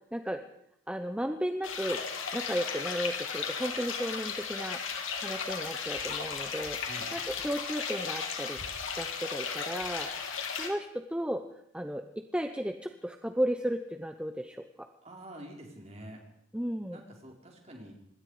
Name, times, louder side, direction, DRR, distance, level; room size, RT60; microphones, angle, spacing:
voice 1, 0.1-0.4 0.9-2.0 2.3-4.8 5.2-6.8 7.1-8.6 9.0-11.4 11.7-12.0 12.3-14.6 16.5-17.0, equal, 5° right, 6 dB, 0.9 m, -34 dB
sound 1, 1.6-10.7, left 6 dB, 75° left, 3.5 m, -35 dB
voice 2, 6.8-7.1 15.0-16.2 16.9-17.9, right 1 dB, 30° right, 0 dB, 4.8 m, -47 dB
25.5 x 21.0 x 5.1 m, 0.74 s
head